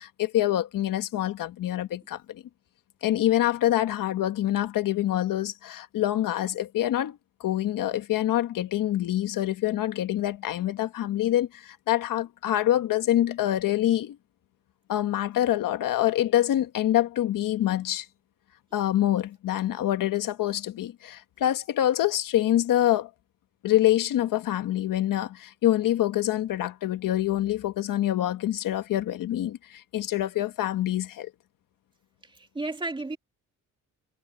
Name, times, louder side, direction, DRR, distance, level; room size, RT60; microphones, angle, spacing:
voice 1, 0.0-2.4 3.0-14.2 14.9-18.1 18.7-23.1 23.6-31.3, left 13 dB, 65° left, 1.5 m, -26 dB
voice 2, 32.2-33.2, right 2 dB, 15° right, 2.6 m, -33 dB
cardioid pair, 165°, 35 cm